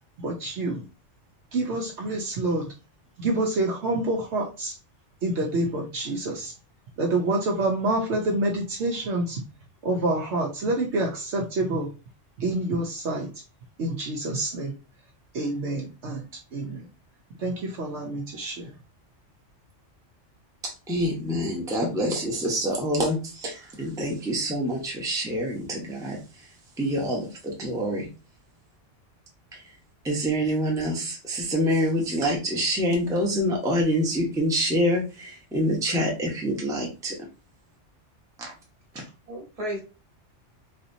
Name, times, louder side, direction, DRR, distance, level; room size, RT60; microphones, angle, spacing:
voice 1, 0.2-0.8 1.5-2.7 3.2-4.7 5.2-6.5 7.0-9.4 9.8-11.9 12.4-13.3 13.8-14.7 15.3-16.8 17.4-18.7, right 2 dB, 65° right, -1 dB, 1.0 m, -27 dB
voice 2, 20.6-26.5 26.8-28.1 29.5-29.6 30.0-37.2, equal, 5° right, -2 dB, 0.8 m, -26 dB
voice 3, 38.9-39.8, equal, 45° right, 0 dB, 1.4 m, -34 dB
4.0 x 2.9 x 2.6 m, 0.32 s
omnidirectional pair, 1.3 m